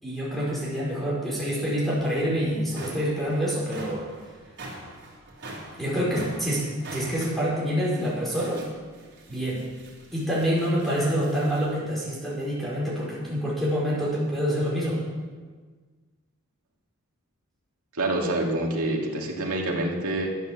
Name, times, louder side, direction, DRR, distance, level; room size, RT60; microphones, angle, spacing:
voice 1, 0.0-4.1 5.8-8.7 9.3-9.7 10.1-15.0, equal, ahead, -7 dB, 4.8 m, -27 dB
sound 1, 2.0-2.1 2.5-11.7, right 2 dB, 55° right, 3.7 m, -44 dB
voice 2, 17.9-20.4, right 1 dB, 70° right, 0 dB, 2.3 m, -27 dB
12.5 x 9.4 x 7.0 m, 1.5 s
head